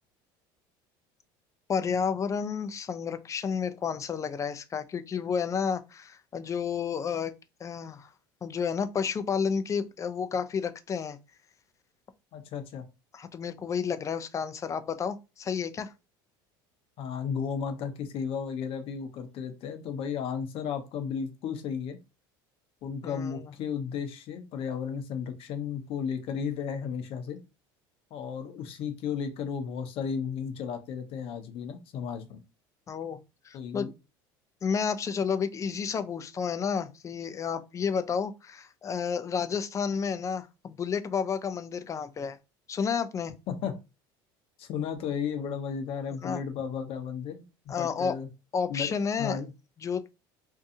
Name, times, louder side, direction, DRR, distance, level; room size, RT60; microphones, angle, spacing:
voice 1, 1.7-7.3 7.6-8.1 8.4-11.2 13.1-15.9 23.0-23.5 32.9-33.2 33.4-33.9 34.6-42.4 42.7-43.3 46.2-46.4 47.7-48.2 48.5-49.4 49.8-50.1, left 6 dB, 30° left, 0.4 m, -31 dB
voice 2, 12.3-12.8 17.0-22.0 22.8-27.4 28.1-32.4 33.5-33.9 43.5-43.7 44.6-48.3 48.7-48.9 49.2-49.5, left 7 dB, 55° left, 0.7 m, -34 dB
2.6 x 2.3 x 2.7 m
supercardioid pair, 95°, 11 cm